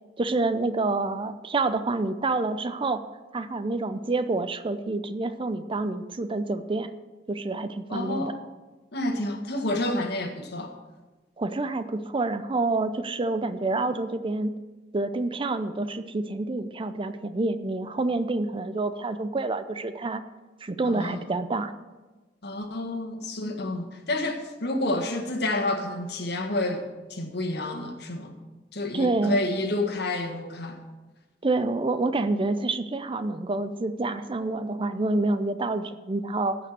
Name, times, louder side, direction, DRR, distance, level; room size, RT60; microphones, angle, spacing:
voice 1, 0.2-3.0 3.3-6.9 7.3-8.3 11.4-14.5 14.9-20.2 20.6-21.7 28.9-29.4 31.4-36.6, right 2 dB, 30° right, 12 dB, 0.5 m, -27 dB
voice 2, 7.9-8.4 8.9-10.7 20.8-21.2 22.4-28.3 28.7-30.8, left 2 dB, 65° left, 4 dB, 1.6 m, -29 dB
15.5 x 5.9 x 6.7 m, 1.2 s
head